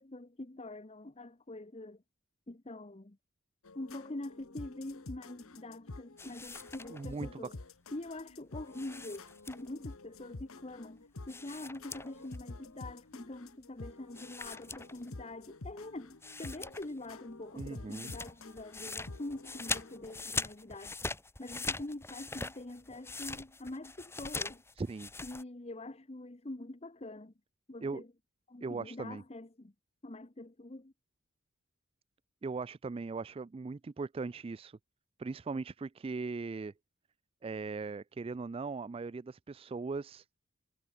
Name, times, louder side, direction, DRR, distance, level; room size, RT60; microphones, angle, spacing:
voice 1, 0.0-2.0 2.5-3.2 3.7-7.5 7.9-20.9 21.4-24.6 25.2-27.3 27.7-28.1 28.5-29.7 30.0-30.9, left 2 dB, 30° left, 1.0 m, -44 dB
sound 1, 3.6-20.2, left 2 dB, 85° left, 1.3 m, -49 dB
sound 2, 6.2-7.3 8.7-9.9 11.3-12.4 12.7-12.8 14.1-15.3 15.8-15.9 16.2-17.1 17.3-25.4, left 3 dB, 10° left, 2.5 m, -41 dB
voice 2, 6.9-7.5 17.6-18.1 24.8-25.1 27.8-28.0 28.6-29.2 32.4-34.8 35.2-36.7 37.4-40.3, right 4 dB, 25° right, 0.3 m, -39 dB
head